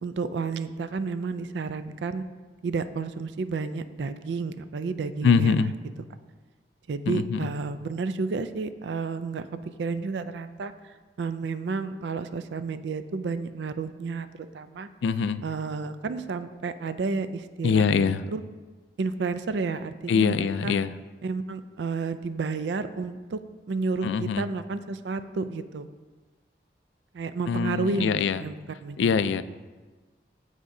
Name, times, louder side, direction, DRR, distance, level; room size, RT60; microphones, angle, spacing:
voice 1, 0.0-2.2 2.6-5.7 6.9-14.9 15.4-18.4 19.0-20.8 21.2-23.4 23.7-25.9 27.1-29.3, right 4 dB, 80° right, 12 dB, 0.4 m, -31 dB
voice 2, 5.2-5.7 7.1-7.5 15.0-15.4 17.6-18.2 20.1-20.9 24.0-24.4 27.5-28.4 29.0-29.4, left 6 dB, 90° left, 14 dB, 0.3 m, -23 dB
15.0 x 5.0 x 2.7 m, 1.3 s
head